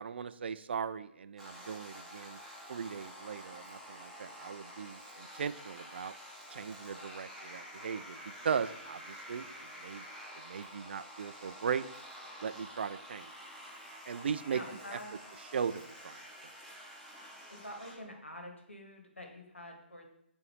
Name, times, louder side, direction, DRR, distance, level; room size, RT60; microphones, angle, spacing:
voice 1, 0.0-2.4 2.7-6.1 6.5-8.2 8.4-9.5 9.8-10.0 10.4-11.9 12.4-13.3 14.1-14.6 14.9-15.0 15.4-16.2, right 6 dB, 60° right, 13 dB, 0.3 m, -38 dB
sound 1, 1.4-18.0, equal, 5° left, 1.1 m, -49 dB
voice 2, 14.5-15.3 17.5-20.1, left 1 dB, 85° left, 3 dB, 1.3 m, -47 dB
7.6 x 2.7 x 4.6 m, 0.77 s
figure-of-eight pair, 130°, 6 cm